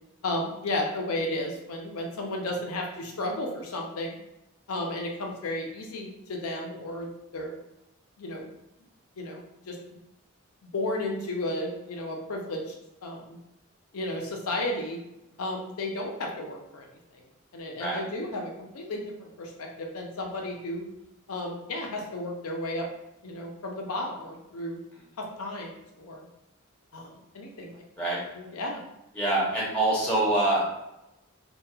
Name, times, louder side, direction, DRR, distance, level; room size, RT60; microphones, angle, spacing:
voice 1, 0.2-4.2 4.7-7.6 8.2-8.5 9.2-9.8 10.7-12.7 13.0-13.4 13.9-15.0 15.4-16.9 17.5-20.9 21.3-22.9 23.2-24.8 25.2-26.3 26.9-28.1 28.3-28.8 29.4-29.5, left 1 dB, 85° left, 1 dB, 0.5 m, -33 dB
voice 2, 29.1-30.6, right 2 dB, 5° left, -7 dB, 0.7 m, -25 dB
2.7 x 2.2 x 2.3 m, 0.90 s
head